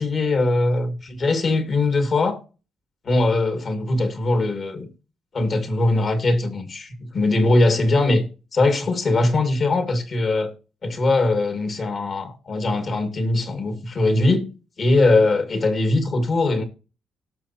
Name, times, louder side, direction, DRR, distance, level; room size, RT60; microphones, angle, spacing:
voice 1, 0.0-2.4 3.0-4.9 5.3-8.2 8.5-10.5 10.8-14.5 14.8-16.6, left 2 dB, 50° left, 2.1 m, -21 dB
18.0 x 6.1 x 2.9 m
cardioid pair, 90°, 0 cm